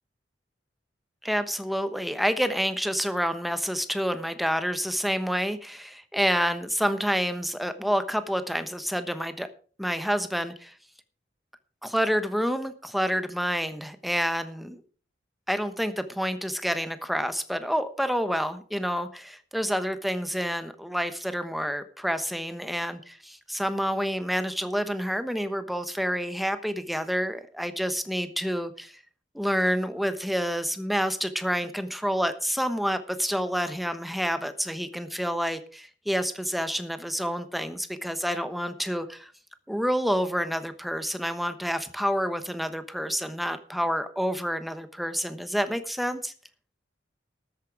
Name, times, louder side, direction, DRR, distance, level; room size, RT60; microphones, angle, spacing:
voice 1, 1.2-9.5 9.8-10.7 11.8-14.8 15.5-29.0 29.3-39.3 39.7-46.3, equal, ahead, 10 dB, 1.0 m, -28 dB
13.0 x 8.9 x 4.8 m, 0.40 s
head